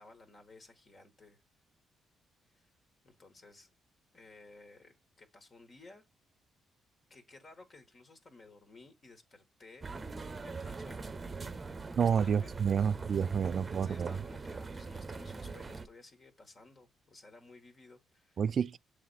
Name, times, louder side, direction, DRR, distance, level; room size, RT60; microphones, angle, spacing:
voice 1, 0.0-1.4 2.5-2.7 3.0-3.7 4.1-6.0 7.1-9.9 10.4-11.1 11.6-12.6 13.5-18.4, left 3 dB, 40° left, 1.8 m, -56 dB
sound 1, 9.8-15.9, right 4 dB, 30° right, 0.8 m, -42 dB
voice 2, 12.0-14.2 18.4-18.8, right 7 dB, 50° right, 0.3 m, -29 dB
7.3 x 3.4 x 4.3 m
cardioid pair, 90°, 0 cm